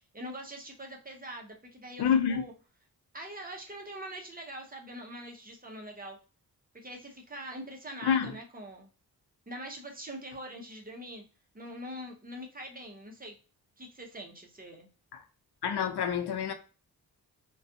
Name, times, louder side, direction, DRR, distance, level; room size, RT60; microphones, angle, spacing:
voice 1, 0.1-2.5 3.1-6.2 6.7-8.9 9.5-11.2 11.5-13.4 13.8-14.9, right 1 dB, 20° right, 0.7 m, -43 dB
voice 2, 2.0-2.4 8.0-8.3 15.6-16.5, left 7 dB, 75° left, 0.5 m, -27 dB
2.4 x 2.3 x 2.5 m
cardioid pair, 70°, 40 cm